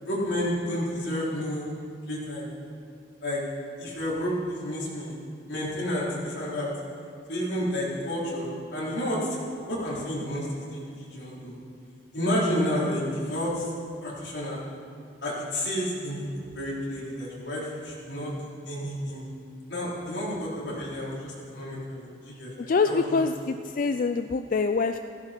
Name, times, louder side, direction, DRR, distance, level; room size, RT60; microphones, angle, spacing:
voice 1, 0.0-1.7 2.1-2.5 3.2-3.4 3.8-5.1 5.5-6.7 7.3-9.4 9.7-11.6 12.1-13.7 14.0-14.6 15.2-16.3 16.5-19.2 19.7-23.2, equal, 85° left, -6 dB, 4.3 m, -30 dB
voice 2, 22.6-25.0, left 4 dB, 50° left, 8 dB, 0.4 m, -25 dB
15.5 x 15.0 x 4.5 m, 2.3 s
head